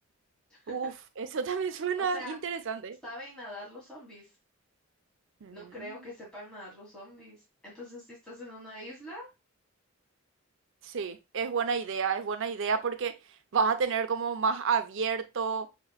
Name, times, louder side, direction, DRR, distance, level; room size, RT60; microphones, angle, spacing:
voice 1, 1.2-3.0 5.4-5.6 10.8-13.1 13.5-15.7, right 5 dB, 60° right, 0.5 m, -30 dB
voice 2, 2.0-2.4 3.0-4.3 5.5-9.3, left 1 dB, 5° left, 1.7 m, -44 dB
6.4 x 3.0 x 2.3 m
head